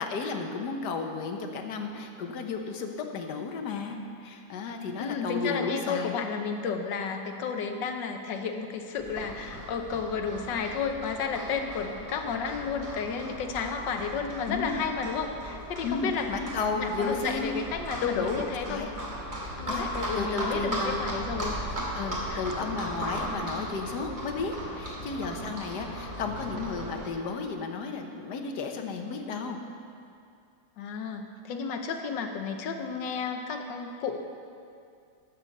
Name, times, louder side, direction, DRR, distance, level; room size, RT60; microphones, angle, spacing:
voice 1, 0.0-6.2 14.5-14.9 15.8-17.5 18.0-18.9 19.7-21.1 21.9-29.6, left 4 dB, 70° left, 4 dB, 1.5 m, -33 dB
voice 2, 5.0-16.3 16.7-18.9 19.6-21.6 22.3-22.7 30.8-34.2, left 5 dB, 90° left, 5 dB, 1.6 m, -32 dB
Livestock farm animals working animals, 9.0-27.1, equal, 35° right, 2.3 m, -37 dB
11.5 x 7.5 x 6.6 m, 2.4 s
omnidirectional pair, 1.9 m